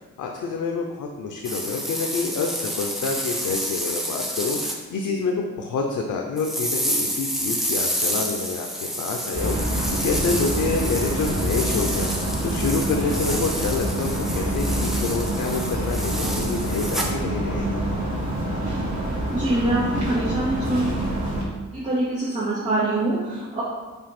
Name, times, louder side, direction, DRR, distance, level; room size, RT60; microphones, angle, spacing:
voice 1, 0.2-8.7 9.0-17.8, left 4 dB, 85° left, 1 dB, 0.8 m, -27 dB
sound 1, 1.4-4.8 6.4-17.1, equal, ahead, 0.7 m, -29 dB
sound 2, 9.3-21.4, right 1 dB, 60° right, 2.5 m, -26 dB
voice 2, 19.3-20.8 21.7-23.6, right 2 dB, 25° right, -12 dB, 2.3 m, -24 dB
5.5 x 5.0 x 6.0 m, 1.2 s
wide cardioid pair, 175°, 30 cm